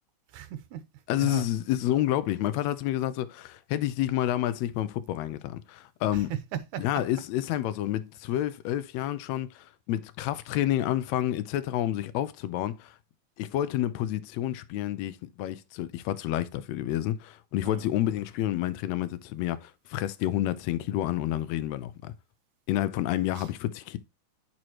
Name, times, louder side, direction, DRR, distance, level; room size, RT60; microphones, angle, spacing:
voice 1, 0.3-0.8 1.2-1.5 6.1-7.0 17.6-17.9 23.3-23.5, right 11 dB, 75° right, 2.2 m, -36 dB
voice 2, 1.1-6.3 6.8-12.9 13.4-22.1 22.7-24.0, left 13 dB, 75° left, 1.7 m, -29 dB
10.5 x 4.7 x 2.9 m
omnidirectional pair, 3.6 m